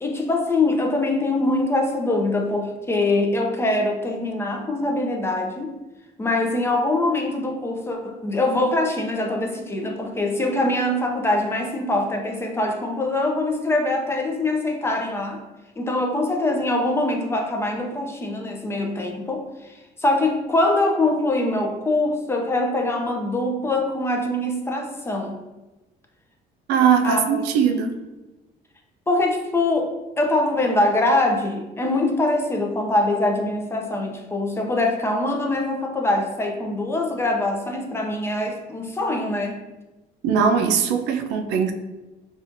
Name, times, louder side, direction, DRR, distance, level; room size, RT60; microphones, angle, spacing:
voice 1, 0.0-5.8 6.2-15.4 15.8-25.4 27.0-27.9 29.1-39.6, left 2 dB, 15° left, 2 dB, 0.4 m, -23 dB
voice 2, 26.7-27.9 40.2-41.7, right 7 dB, 85° right, 6 dB, 0.4 m, -20 dB
4.2 x 2.4 x 2.5 m, 1.1 s
cardioid pair, 110°, 17 cm